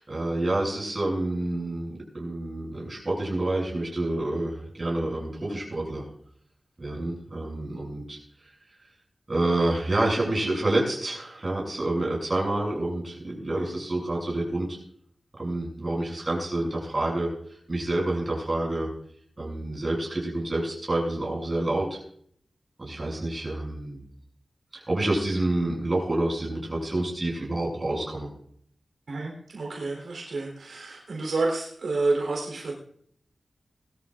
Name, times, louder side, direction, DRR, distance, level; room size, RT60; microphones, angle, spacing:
voice 1, 0.0-6.0 6.8-8.5 9.3-14.8 15.4-17.3 17.7-18.9 19.4-22.0 22.8-24.0 24.7-28.3, right 2 dB, 30° right, -2 dB, 7.3 m, -28 dB
voice 2, 29.1-32.7, right 3 dB, 80° right, -1 dB, 3.9 m, -29 dB
21.0 x 13.0 x 2.6 m, 0.63 s
wide cardioid pair, 115°, 0 cm